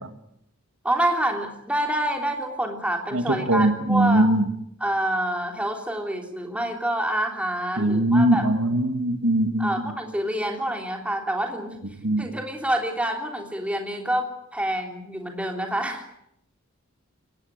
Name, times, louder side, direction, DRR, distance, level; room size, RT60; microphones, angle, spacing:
voice 1, 0.8-4.3 4.8-8.4 9.6-11.8 12.2-16.2, right 1 dB, 5° right, 3 dB, 3.3 m, -27 dB
voice 2, 3.1-4.5 7.8-9.9 12.0-12.2, right 1 dB, 70° right, 8 dB, 2.2 m, -21 dB
23.0 x 18.5 x 8.9 m, 0.75 s
head